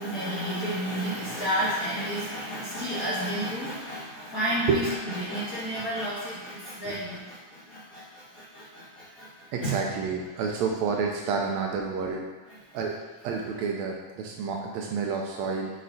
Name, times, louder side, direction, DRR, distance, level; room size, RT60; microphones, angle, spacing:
voice 1, 0.0-9.8 10.3-10.4 12.5-12.8, equal, 35° left, -10 dB, 1.7 m, -31 dB
voice 2, 9.5-12.2 12.7-13.0 13.2-15.7, right 5 dB, 80° right, 0 dB, 1.7 m, -29 dB
6.3 x 6.0 x 2.7 m, 1.3 s
omnidirectional pair, 3.4 m